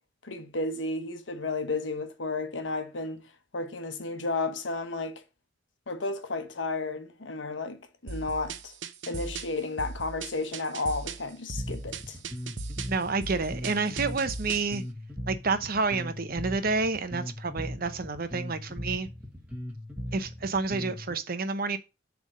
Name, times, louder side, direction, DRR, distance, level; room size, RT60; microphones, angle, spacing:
voice 1, 0.2-3.3 3.5-5.2 5.9-8.7 9.1-12.2, left 3 dB, 80° left, 1.1 m, -33 dB
sound 1, 8.1-14.8, right 4 dB, 85° right, 0.8 m, -39 dB
Bass guitar, 11.6-21.1, equal, 10° right, 1.8 m, -38 dB
voice 2, 12.9-14.8 15.3-19.1 20.1-21.8, right 4 dB, 55° right, 0.9 m, -29 dB
7.4 x 3.6 x 6.5 m
head